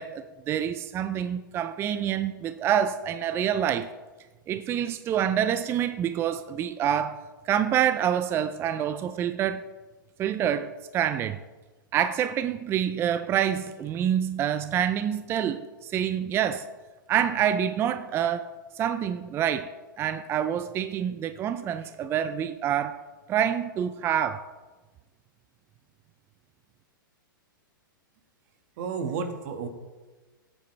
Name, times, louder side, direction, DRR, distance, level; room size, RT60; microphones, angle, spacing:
voice 1, 0.0-3.9 4.5-7.2 7.5-9.6 10.2-11.4 11.9-16.7 17.1-19.7 20.0-23.0 23.3-24.4, right 9 dB, 20° right, 0.4 m, -27 dB
voice 2, 28.8-29.7, right 5 dB, 50° right, 1.8 m, -31 dB
17.0 x 8.7 x 3.3 m
hypercardioid pair, 130°, 11 cm